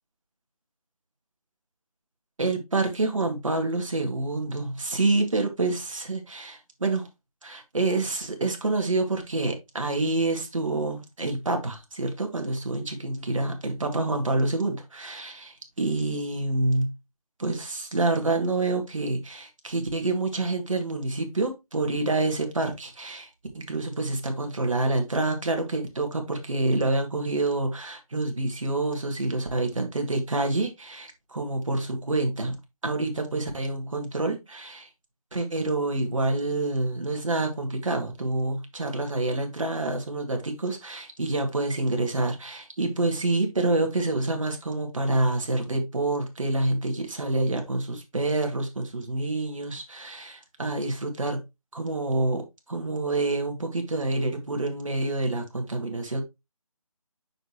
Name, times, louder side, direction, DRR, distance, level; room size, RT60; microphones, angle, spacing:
voice 1, 2.4-7.1 7.4-16.9 17.4-23.3 23.5-32.6 32.8-34.9 35.3-51.4 51.7-52.4 52.7-56.2, right 2 dB, 60° right, 2.0 m, -27 dB
6.4 x 6.4 x 2.9 m
figure-of-eight pair, 155°, 19 cm